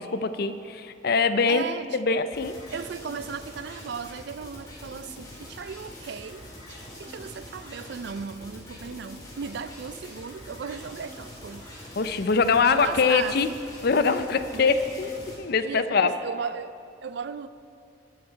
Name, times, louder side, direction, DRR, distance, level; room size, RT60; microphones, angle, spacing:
voice 1, 0.0-1.6 1.9-2.6 12.0-13.5 13.8-16.1, left 5 dB, 55° left, 11 dB, 0.5 m, -23 dB
voice 2, 1.5-2.0 2.7-11.7 12.6-13.6 14.5-14.7 15.6-17.5, right 6 dB, 60° right, 14 dB, 0.4 m, -36 dB
sound 1, 2.3-15.4, left 1 dB, 20° left, 2.4 m, -44 dB
19.0 x 6.6 x 4.5 m, 2.5 s
head